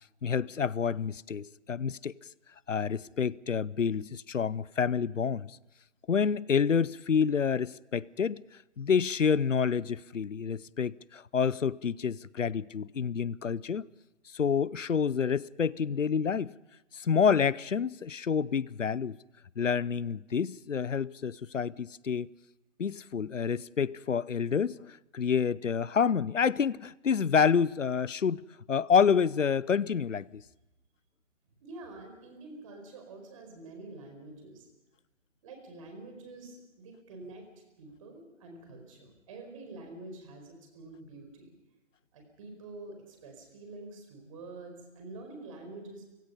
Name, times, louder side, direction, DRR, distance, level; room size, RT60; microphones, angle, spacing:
voice 1, 0.2-2.1 2.7-5.5 6.1-8.4 8.8-13.8 14.3-16.5 16.9-19.2 19.6-22.3 22.8-30.4, left 6 dB, 80° left, 0.7 m, -28 dB
voice 2, 31.6-34.7 35.4-37.5 37.8-41.5 42.1-46.0, right 2 dB, 25° right, 4.6 m, -47 dB
29.5 x 17.0 x 5.6 m
figure-of-eight pair, 150°, 38 cm